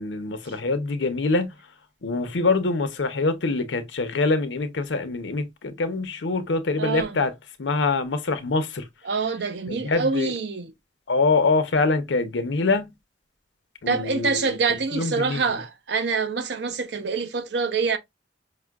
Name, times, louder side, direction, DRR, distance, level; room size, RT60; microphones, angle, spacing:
voice 1, 0.0-1.6 2.0-7.3 7.6-8.9 9.7-10.3 11.1-12.9 13.8-15.6, left 3 dB, 80° left, 0.7 m, -24 dB
voice 2, 6.8-7.2 9.0-10.7 13.9-18.0, right 4 dB, 65° right, 0.6 m, -26 dB
5.4 x 2.1 x 2.3 m
head